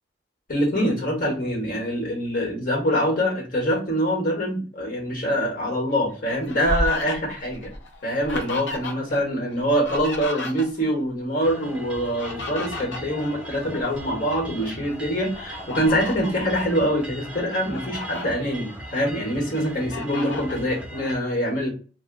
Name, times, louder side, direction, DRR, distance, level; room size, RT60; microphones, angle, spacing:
voice 1, 0.5-7.7 8.0-21.7, equal, 45° left, -2 dB, 1.2 m, -24 dB
Fowl, 5.9-9.2 9.5-11.0 11.9-14.0 14.5-14.7 15.3-16.4 17.0-17.1 17.5-18.3 18.8-19.5 19.9-20.6, left 2 dB, 75° left, 0.7 m, -33 dB
sound 1, 11.4-21.1, right 1 dB, 5° right, 0.7 m, -39 dB
2.7 x 2.1 x 3.8 m, 0.37 s
head